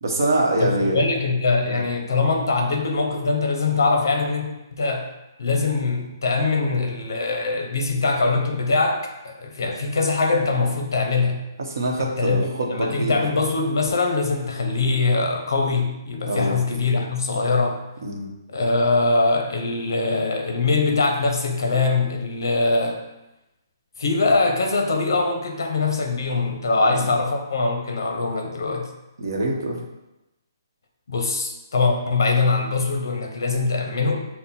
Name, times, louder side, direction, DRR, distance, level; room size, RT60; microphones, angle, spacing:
voice 1, 0.0-1.0 1.7-1.8 10.4-10.5 11.6-13.4 16.2-16.6 18.0-18.3 26.9-27.1 29.2-29.8, right 1 dB, 55° right, 0 dB, 0.9 m, -24 dB
voice 2, 0.6-4.5 4.8-5.1 5.4-11.4 12.0-17.8 18.5-23.0 24.0-28.9 31.1-34.2, left 3 dB, 60° left, 3 dB, 0.7 m, -22 dB
5.4 x 2.1 x 4.2 m, 0.96 s
hypercardioid pair, 180°, 2 cm